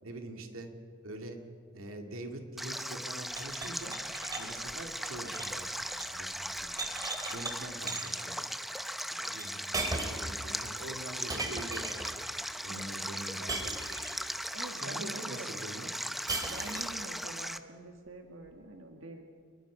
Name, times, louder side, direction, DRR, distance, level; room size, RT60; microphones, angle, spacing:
voice 1, 0.0-0.7 1.0-1.4 1.7-4.0 4.4-5.8 6.1-6.8 7.3-8.6 8.8-11.9 12.6-13.7 14.7-15.9, right 1 dB, 90° right, 3 dB, 2.3 m, -44 dB
Stream, 2.6-17.6, equal, ahead, 0.7 m, -38 dB
sound 1, 3.3-6.2 6.5-7.5 7.9-8.3 9.4-9.5 9.7-10.3 11.3-12.2 13.5-14.3 16.3-17.0, right 2 dB, 20° right, 2.9 m, -38 dB
voice 2, 12.7-13.0 14.5-15.5 16.5-19.2, right 2 dB, 65° right, 3 dB, 1.8 m, -46 dB
29.0 x 21.5 x 5.0 m, 2.2 s
head